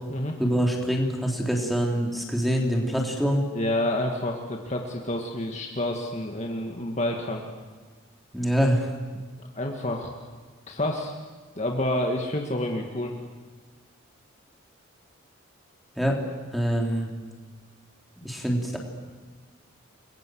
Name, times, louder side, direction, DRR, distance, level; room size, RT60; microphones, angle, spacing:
voice 1, 0.4-3.4 8.3-8.9 16.0-16.2 16.5-17.1 18.2-18.8, equal, ahead, -1 dB, 3.6 m, -25 dB
voice 2, 3.5-7.4 9.4-10.1 10.7-11.1 11.6-13.1, left 1 dB, 30° left, 2 dB, 2.0 m, -29 dB
30.0 x 22.0 x 7.9 m, 1.4 s
head